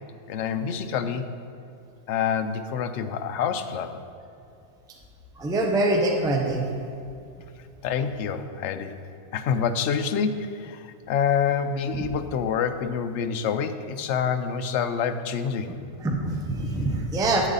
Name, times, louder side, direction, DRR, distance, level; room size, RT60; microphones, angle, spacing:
voice 1, 0.3-1.3 2.1-4.0 7.8-8.9 9.3-15.8, left 7 dB, 65° left, 8 dB, 0.8 m, -27 dB
voice 2, 5.4-6.6 16.0-17.5, right 2 dB, 5° right, 1 dB, 0.6 m, -24 dB
13.0 x 8.3 x 4.0 m, 2.6 s
omnidirectional pair, 1.6 m